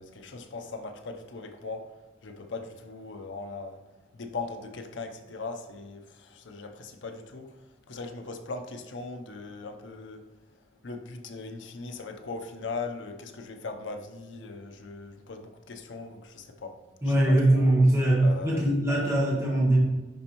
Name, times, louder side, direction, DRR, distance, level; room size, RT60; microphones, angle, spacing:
voice 1, 0.0-1.9 2.2-3.8 4.1-7.6 7.9-10.3 10.8-16.8 17.1-17.7 18.2-18.9, left 3 dB, 85° left, 5 dB, 0.7 m, -39 dB
voice 2, 17.0-19.8, right 1 dB, 15° right, -4 dB, 1.2 m, -22 dB
10.5 x 4.4 x 3.0 m, 1.1 s
head